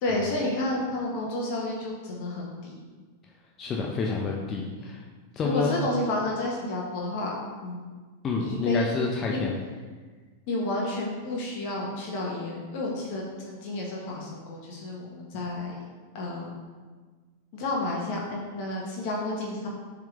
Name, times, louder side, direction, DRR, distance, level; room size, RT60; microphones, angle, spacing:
voice 1, 0.0-2.8 4.8-4.9 5.4-7.3 7.6-7.8 8.4-8.9 9.3-9.4 10.5-15.7 16.1-16.5 17.5-19.7, left 2 dB, 50° left, -3 dB, 1.3 m, -31 dB
voice 2, 3.6-5.0 5.3-5.7 8.2-9.5, left 4 dB, 30° left, -1 dB, 0.7 m, -28 dB
7.3 x 3.7 x 3.7 m, 1.4 s
figure-of-eight pair, 95°, 0 cm